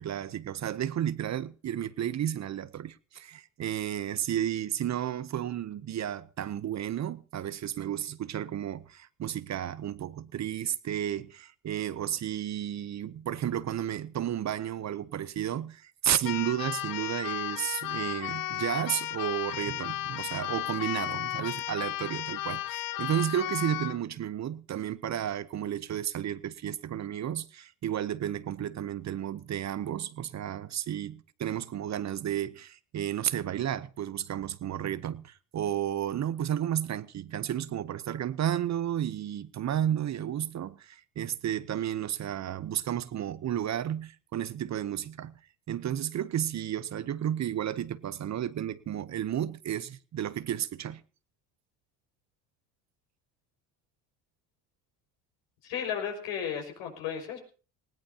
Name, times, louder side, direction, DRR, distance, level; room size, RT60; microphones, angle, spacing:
voice 1, 0.0-45.3 45.7-51.0, right 10 dB, 40° right, 0.7 m, -32 dB
Keyboard (musical), 16.2-24.0, left 15 dB, 50° left, 0.6 m, -34 dB
voice 2, 55.6-57.4, left 8 dB, 80° left, 5.7 m, -34 dB
19.5 x 17.0 x 2.8 m
supercardioid pair, 80°, 44 cm